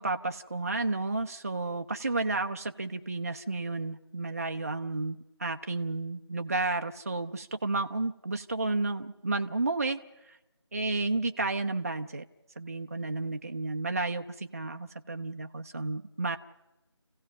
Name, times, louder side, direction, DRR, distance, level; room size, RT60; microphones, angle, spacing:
voice 1, 0.0-10.0 10.3-10.4 10.7-12.2 12.6-16.4, right 3 dB, 30° right, 5 dB, 0.6 m, -32 dB
29.5 x 16.0 x 5.4 m, 0.94 s
figure-of-eight pair, 165°, 15 cm